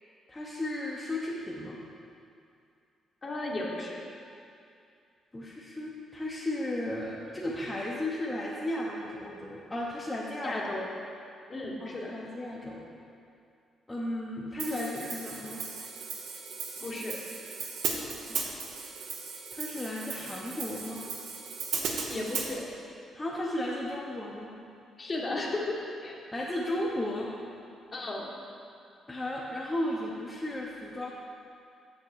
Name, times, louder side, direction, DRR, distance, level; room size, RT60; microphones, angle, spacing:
voice 1, 0.3-1.8 5.3-10.6 11.8-12.8 13.9-15.6 18.2-18.5 19.5-21.0 23.1-24.5 26.3-27.3 29.1-31.1, left 1 dB, 15° left, -5 dB, 0.9 m, -34 dB
voice 2, 3.2-4.0 10.4-10.8 11.5-12.1 16.8-17.1 22.0-22.6 25.0-26.2 27.9-28.3, left 2 dB, 35° left, -2 dB, 1.3 m, -34 dB
Hi-hat, 14.6-22.5, right 5 dB, 75° right, 0.9 m, -37 dB
7.2 x 6.3 x 4.6 m, 2.5 s
cardioid pair, 90°, 0 cm